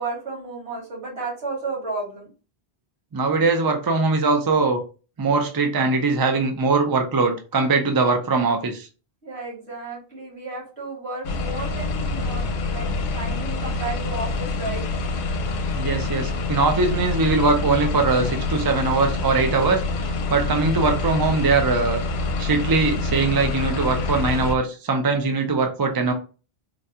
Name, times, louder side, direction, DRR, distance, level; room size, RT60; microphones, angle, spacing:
voice 1, 0.0-2.3 9.2-14.9, right 3 dB, 70° right, -5 dB, 2.1 m, -33 dB
voice 2, 3.1-4.8 5.2-8.9 15.7-22.0 22.4-26.1, right 3 dB, 35° right, 4 dB, 0.3 m, -21 dB
sound 1, 11.2-24.5, left 3 dB, 70° left, 0.8 m, -26 dB
3.9 x 2.3 x 2.7 m, 0.34 s
omnidirectional pair, 1.1 m